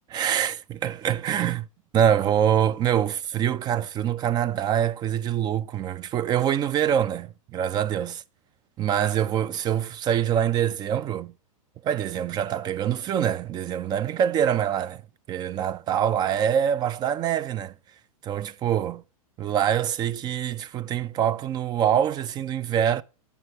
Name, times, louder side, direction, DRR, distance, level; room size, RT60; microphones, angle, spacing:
voice 1, 0.1-1.7 1.9-8.2 8.8-11.3 11.8-15.0 15.3-17.7 18.2-19.0 19.4-23.0, right 9 dB, 25° right, 0.4 m, -25 dB
8.2 x 5.5 x 4.8 m
hypercardioid pair, 115°, 19 cm